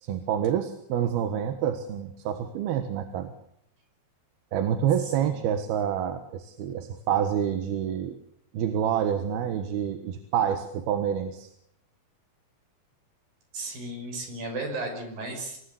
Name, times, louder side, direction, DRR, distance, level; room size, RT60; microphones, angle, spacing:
voice 1, 0.0-3.3 4.5-8.2 8.5-11.5, right 9 dB, 80° right, 9 dB, 3.3 m, -27 dB
voice 2, 5.2-5.6 13.5-15.6, right 2 dB, 65° right, 4 dB, 7.5 m, -35 dB
26.0 x 18.5 x 8.4 m, 0.74 s
omnidirectional pair, 4.4 m